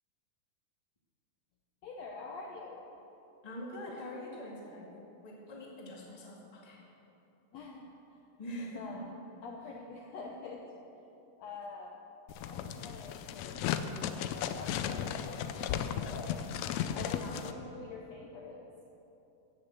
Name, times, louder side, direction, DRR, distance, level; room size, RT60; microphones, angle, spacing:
voice 1, 1.8-2.9 7.5-8.2 8.8-9.1 9.4-10.6 11.4-12.0 12.5-15.7 16.0-16.5 16.9-18.7, left 4 dB, 70° left, 0 dB, 1.7 m, -46 dB
voice 2, 3.4-6.8 8.4-9.0 17.2-17.4, left 1 dB, 15° left, -3 dB, 1.4 m, -44 dB
sound 1, 12.3-17.5, left 9 dB, 90° left, 1.5 m, -35 dB
15.0 x 6.7 x 8.1 m, 3.0 s
omnidirectional pair, 3.9 m